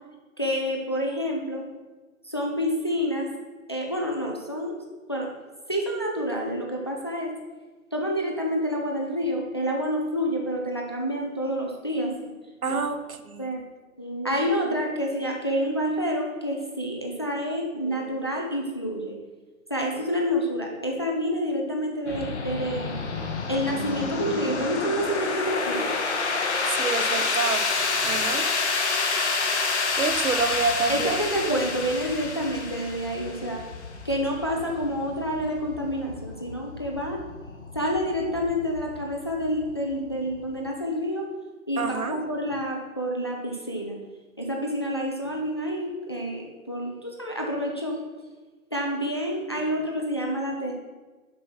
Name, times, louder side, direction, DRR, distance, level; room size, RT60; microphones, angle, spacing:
voice 1, 0.4-1.6 2.2-3.3 3.7-4.8 5.1-5.3 5.7-7.3 7.9-12.3 12.7-12.8 13.4-13.6 14.0-19.2 19.7-23.0 23.5-25.9 30.9-33.6 34.0-37.2 37.7-41.3 41.7-44.0 44.4-48.0 48.7-50.7, equal, 20° left, 0 dB, 0.5 m, -28 dB
voice 2, 12.6-13.5 26.7-28.5 30.0-31.2 31.5-31.6 41.8-42.2, right 4 dB, 75° right, 10 dB, 1.0 m, -28 dB
sound 1, 22.1-40.7, left 4 dB, 50° left, 1.2 m, -29 dB
7.5 x 6.0 x 5.6 m, 1.3 s
figure-of-eight pair, 145°, 43 cm